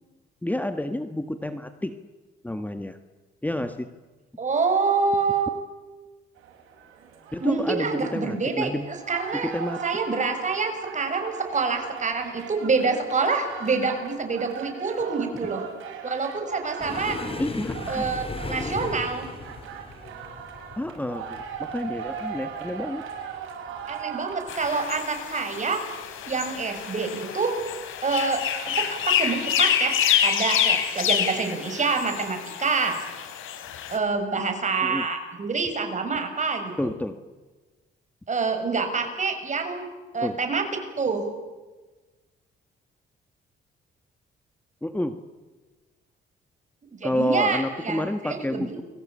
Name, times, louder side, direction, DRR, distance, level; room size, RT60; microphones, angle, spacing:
voice 1, 0.4-1.9 2.4-3.0 3.4-3.9 7.3-8.8 9.4-9.8 17.4-18.1 20.8-23.0 34.8-35.0 36.8-37.1 40.2-40.4 44.8-45.2 47.0-48.8, left 1 dB, 10° left, 8 dB, 1.5 m, -29 dB
voice 2, 4.4-5.5 7.4-9.5 9.8-15.6 16.0-17.2 17.9-19.3 23.9-25.8 26.2-27.6 28.0-28.4 28.8-29.9 30.2-33.0 33.9-36.7 38.3-40.6 41.0-41.3 46.9-48.8, right 4 dB, 35° right, 6 dB, 6.4 m, -26 dB
sound 1, 6.4-24.9, right 7 dB, 85° right, 5.8 m, -39 dB
sound 2, 16.8-24.0 24.3-24.7 25.0-25.2 26.0-26.6 27.6-27.8 29.1-29.3, left 3 dB, 30° left, 3.7 m, -37 dB
sound 3, 24.5-34.0, left 9 dB, 85° left, 3.9 m, -27 dB
30.0 x 22.5 x 8.7 m, 1.3 s
cardioid pair, 90°, 20 cm